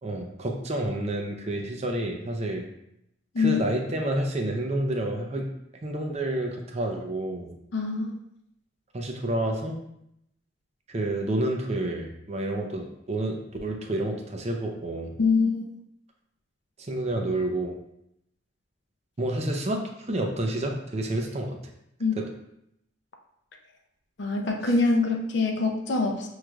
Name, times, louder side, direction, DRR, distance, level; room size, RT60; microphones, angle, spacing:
voice 1, 0.0-2.7 3.4-5.5 5.8-7.5 8.9-9.8 10.9-15.1 16.8-17.8 19.2-21.6 22.2-22.3, right 1 dB, 35° right, 3 dB, 0.5 m, -29 dB
voice 2, 7.7-8.1 15.2-15.7 22.0-22.2 24.2-26.3, left 4 dB, 60° left, 2 dB, 0.5 m, -24 dB
6.2 x 3.2 x 2.3 m, 0.79 s
head